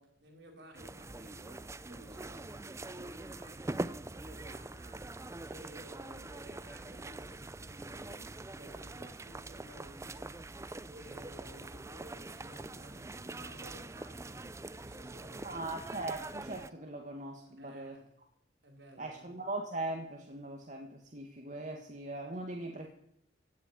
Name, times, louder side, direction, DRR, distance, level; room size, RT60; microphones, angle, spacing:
voice 1, 0.0-5.2 5.4-10.5 10.9-15.7 17.6-18.1 18.6-19.3, equal, 65° right, 4.6 m, -55 dB
sound 1, 0.7-16.7, right 2 dB, 15° right, 0.5 m, -44 dB
voice 2, 15.4-18.0 19.0-22.9, right 2 dB, 40° right, 1.8 m, -40 dB
16.5 x 6.9 x 10.0 m
head